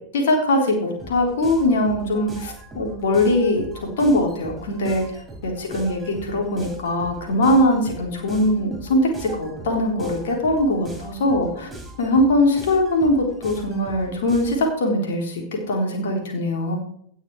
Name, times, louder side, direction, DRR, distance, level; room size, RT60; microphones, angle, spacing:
voice 1, 0.1-11.7 12.0-16.8, left 1 dB, 60° left, 1 dB, 3.6 m, -21 dB
sound 1, 1.0-14.7, right 1 dB, 10° right, 5.5 m, -40 dB
18.0 x 6.4 x 4.8 m, 0.66 s
figure-of-eight pair, 90°, 0 cm